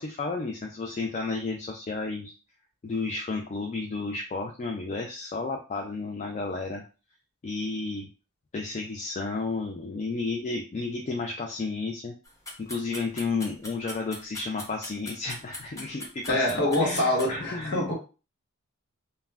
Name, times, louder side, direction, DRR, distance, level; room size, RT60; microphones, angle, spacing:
voice 1, 0.0-2.3 2.8-6.8 7.4-8.1 8.5-12.1 12.6-16.4 16.8-17.9, left 3 dB, 30° left, 0.3 m, -32 dB
sound 1, 12.2-17.3, left 1 dB, 15° left, 0.8 m, -40 dB
voice 2, 16.3-17.9, left 1 dB, 50° left, 1.0 m, -25 dB
2.3 x 2.1 x 3.3 m
head